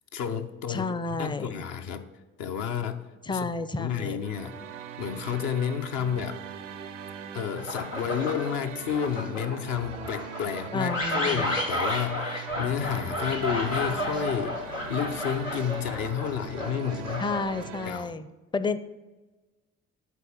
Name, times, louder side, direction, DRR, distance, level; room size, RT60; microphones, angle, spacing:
voice 1, 0.1-2.0 2.4-4.5 5.0-6.4 7.3-17.2 17.8-18.1, left 8 dB, 60° left, 7 dB, 0.8 m, -31 dB
voice 2, 0.7-1.6 3.2-4.2 10.7-11.4 17.2-18.3 18.5-18.8, left 3 dB, 10° left, 14 dB, 0.5 m, -31 dB
sound 1, 4.2-17.9, right 8 dB, 85° right, 0.5 m, -41 dB
sound 2, 7.6-8.5 8.9-17.8, left 1 dB, 90° left, 0.8 m, -32 dB
8.3 x 4.4 x 7.0 m, 1.2 s
figure-of-eight pair, 40°, 38 cm